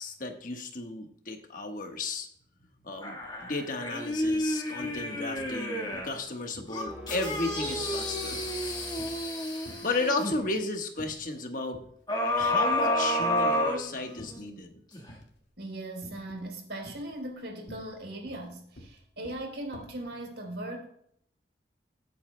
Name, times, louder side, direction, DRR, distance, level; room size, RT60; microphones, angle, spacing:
voice 1, 0.0-2.3 2.8-8.4 9.1-9.2 9.8-11.8 12.3-14.8, left 3 dB, 50° left, 4 dB, 1.3 m, -34 dB
sound 1, 3.0-6.2 6.7-10.4 12.1-14.4 14.9-15.0, left 1 dB, 25° left, 1.5 m, -30 dB
sound 2, 3.2-3.4 3.7-4.4 4.8-5.7 5.9-6.3 6.5-9.3 9.6-10.6 11.0-11.4 11.7-11.9 12.3-12.9 13.2-14.5 15.1-15.5 16.0-16.5 16.8-20.0, left 1 dB, 80° left, 1.9 m, -50 dB
sound 3, 6.9-9.8, equal, 5° right, 1.1 m, -45 dB
voice 2, 15.6-20.9, right 1 dB, 70° right, 2 dB, 3.7 m, -39 dB
21.0 x 8.4 x 2.2 m, 0.65 s
head